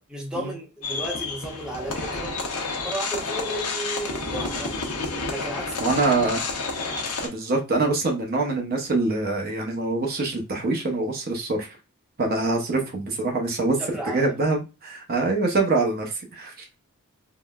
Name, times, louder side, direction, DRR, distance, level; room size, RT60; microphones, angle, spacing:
voice 1, 0.1-4.9 5.3-6.0 13.8-14.3, right 1 dB, 5° right, 0.7 m, -34 dB
sound 1, 0.8-7.3, left 3 dB, 90° left, 0.8 m, -30 dB
voice 2, 5.8-6.4 7.2-11.7 12.2-13.8 14.1-16.5, right 3 dB, 45° right, 0.6 m, -24 dB
3.7 x 2.1 x 2.2 m
head